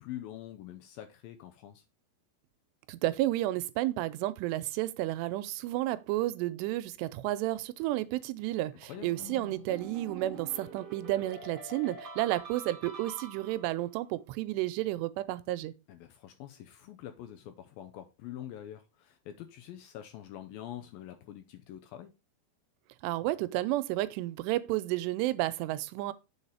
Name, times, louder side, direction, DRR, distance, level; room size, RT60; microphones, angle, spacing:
voice 1, 0.0-1.8 8.9-9.1 15.9-22.1, left 11 dB, 80° left, 2.3 m, -45 dB
voice 2, 2.9-15.7 23.0-26.1, right 16 dB, 90° right, 2.7 m, -31 dB
sound 1, 8.9-13.9, right 3 dB, 20° right, 2.7 m, -46 dB
6.8 x 4.0 x 5.5 m
omnidirectional pair, 4.8 m